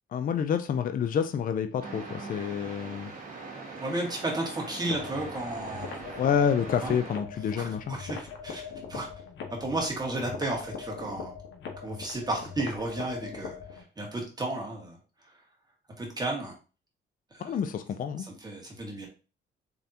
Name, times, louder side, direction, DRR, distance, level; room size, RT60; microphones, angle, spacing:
voice 1, 0.1-3.1 6.2-8.0 17.4-18.3, left 7 dB, 45° left, 9 dB, 0.4 m, -28 dB
sound 1, 1.8-7.2, right 3 dB, 45° right, 1.6 m, -41 dB
voice 2, 3.8-6.0 6.8-6.9 7.5-9.1 9.6-11.3 11.8-15.3 16.0-16.5 17.3-17.6 18.2-19.1, right 2 dB, 20° right, -2 dB, 1.7 m, -33 dB
sound 2, 4.8-13.8, left 6 dB, 75° left, 1.0 m, -41 dB
3.9 x 3.3 x 2.8 m, 0.34 s
cardioid pair, 90°, 20 cm